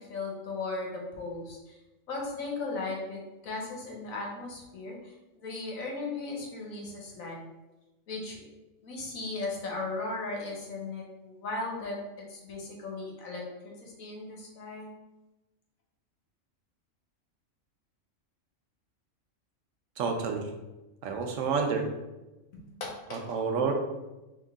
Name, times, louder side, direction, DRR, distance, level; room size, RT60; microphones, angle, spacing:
voice 1, 0.1-1.8 2.1-5.1 5.4-7.4 8.1-8.4 8.8-12.0 12.3-13.4 13.8-14.9 22.5-23.2, left 3 dB, 85° left, -1 dB, 1.4 m, -37 dB
voice 2, 20.0-20.4 21.0-21.9 23.1-23.7, right 5 dB, 75° right, 3 dB, 1.0 m, -29 dB
3.8 x 3.0 x 3.5 m, 1.0 s
omnidirectional pair, 1.4 m